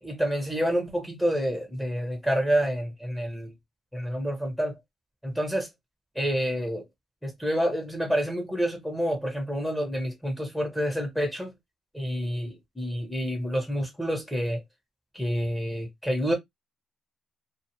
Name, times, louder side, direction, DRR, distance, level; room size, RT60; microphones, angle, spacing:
voice 1, 0.0-3.5 3.9-4.8 5.2-5.7 6.1-6.8 7.2-11.5 11.9-14.6 15.1-16.3, equal, ahead, 1.1 m, -28 dB
2.4 x 2.4 x 2.8 m
cardioid pair, 90°, 0 cm